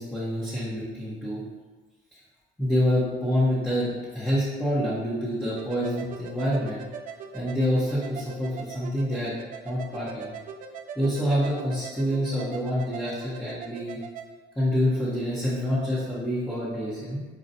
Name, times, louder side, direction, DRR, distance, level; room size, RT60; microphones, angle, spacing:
voice 1, 0.0-1.4 2.1-2.2 2.6-6.8 7.3-9.4 9.6-10.3 11.0-14.0 14.6-17.2, equal, 5° left, -9 dB, 0.9 m, -27 dB
sound 1, 5.6-14.3, right 6 dB, 55° right, 0.4 m, -41 dB
5.4 x 2.3 x 2.7 m, 1.3 s
cardioid pair, 110°, 17 cm